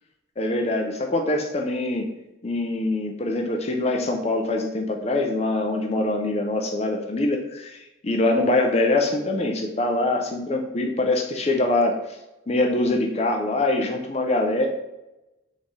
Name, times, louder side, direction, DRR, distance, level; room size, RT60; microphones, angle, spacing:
voice 1, 0.4-2.1 2.4-12.0 12.5-14.7, left 2 dB, 35° left, 3 dB, 0.5 m, -24 dB
4.0 x 3.1 x 3.6 m, 0.94 s
head